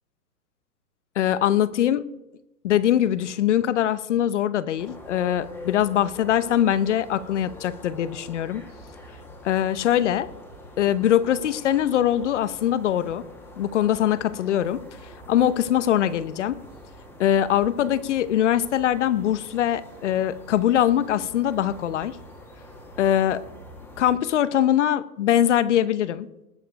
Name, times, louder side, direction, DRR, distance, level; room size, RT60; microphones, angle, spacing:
voice 1, 1.2-2.0 2.6-8.7 9.4-10.3 10.8-13.2 13.6-14.8 15.3-16.6 17.2-22.2 23.0-23.4 24.0-26.3, left 11 dB, 50° left, 18 dB, 0.7 m, -22 dB
sound 1, 4.8-24.2, left 1 dB, 5° left, 1.4 m, -45 dB
19.5 x 6.8 x 5.1 m, 0.94 s
hypercardioid pair, 160°, 47 cm